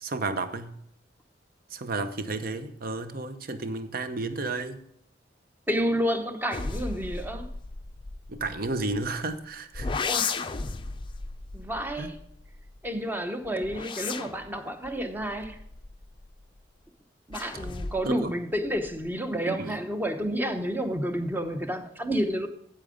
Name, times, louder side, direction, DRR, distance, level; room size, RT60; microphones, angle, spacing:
voice 1, 0.0-0.7 1.7-4.8 8.3-9.9 12.0-12.1 18.1-18.3 19.5-19.7, right 3 dB, 55° right, 0.7 m, -32 dB
voice 2, 5.7-7.5 10.0-10.4 11.5-12.2 12.8-15.6 17.3-22.5, equal, 10° right, 0.8 m, -30 dB
sound 1, 6.5-9.2 9.7-12.9 13.4-16.5 17.3-18.2 18.5-19.1, left 4 dB, 30° left, 0.5 m, -35 dB
8.8 x 7.7 x 5.0 m
head